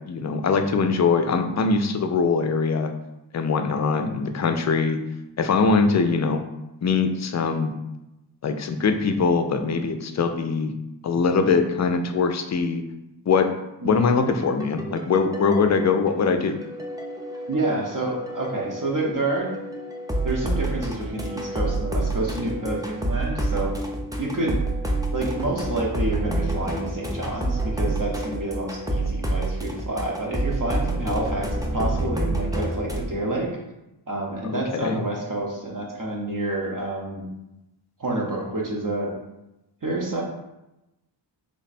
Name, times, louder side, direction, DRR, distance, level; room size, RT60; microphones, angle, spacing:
voice 1, 0.1-2.9 3.3-5.0 5.4-6.4 6.8-7.7 8.4-10.7 11.0-12.8 13.3-13.5 13.8-16.6 34.5-35.0, left 4 dB, 40° left, 7 dB, 0.4 m, -22 dB
sound 1, 14.2-33.0, right 1 dB, 10° right, 0.6 m, -28 dB
voice 2, 17.5-19.5 20.2-23.7 24.2-24.6 25.1-33.5 34.1-37.3 38.0-39.1 39.8-40.2, right 2 dB, 45° right, -1 dB, 0.9 m, -28 dB
3.4 x 2.2 x 4.1 m, 0.94 s
wide cardioid pair, 65°, 44 cm